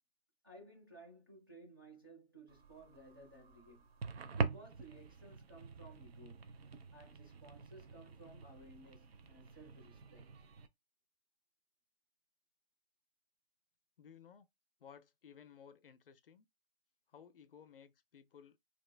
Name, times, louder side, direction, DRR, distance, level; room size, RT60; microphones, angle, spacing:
voice 1, 0.4-3.8 4.2-6.4 6.9-10.3, right 2 dB, 20° right, 0.4 m, -57 dB
sound 1, 2.5-10.7, right 4 dB, 60° right, 0.6 m, -45 dB
voice 2, 14.0-14.5 14.8-16.5 17.1-18.6, left 7 dB, 55° left, 0.5 m, -58 dB
2.8 x 2.4 x 3.2 m
hypercardioid pair, 165°, 35 cm